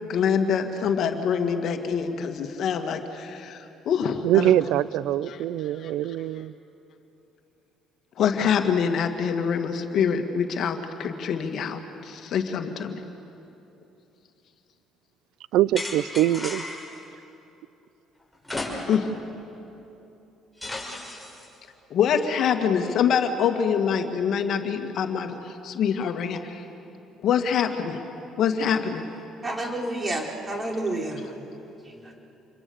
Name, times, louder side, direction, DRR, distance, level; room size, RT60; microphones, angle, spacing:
voice 1, 0.0-4.5 5.3-5.4 5.7-5.9 8.2-12.9 18.8-19.1 21.9-26.6 27.2-28.0 28.4-29.0, left 7 dB, 65° left, 2.1 m, -25 dB
voice 2, 4.2-6.5 15.5-16.6, right 13 dB, 75° right, 0.5 m, -23 dB
sound 1, 15.8-17.0 18.4-19.2 19.5-19.6 20.6-21.5, left 2 dB, 5° left, 5.9 m, -34 dB
voice 3, 29.4-31.3 31.8-32.1, right 1 dB, 25° right, 4.6 m, -30 dB
27.5 x 22.5 x 7.1 m
supercardioid pair, 70°, 0 cm